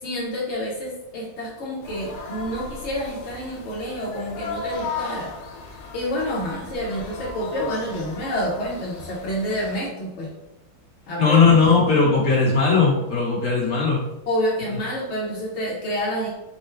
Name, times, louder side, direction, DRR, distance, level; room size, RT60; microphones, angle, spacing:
voice 1, 0.0-5.3 5.9-10.3 11.1-11.5 14.3-16.3, equal, 55° left, -5 dB, 0.8 m, -28 dB
sound 1, 1.8-9.8, left 4 dB, 85° left, 1.6 m, -36 dB
voice 2, 11.2-14.0, left 4 dB, 35° left, -5 dB, 1.4 m, -18 dB
4.5 x 2.2 x 4.4 m, 0.94 s
omnidirectional pair, 2.3 m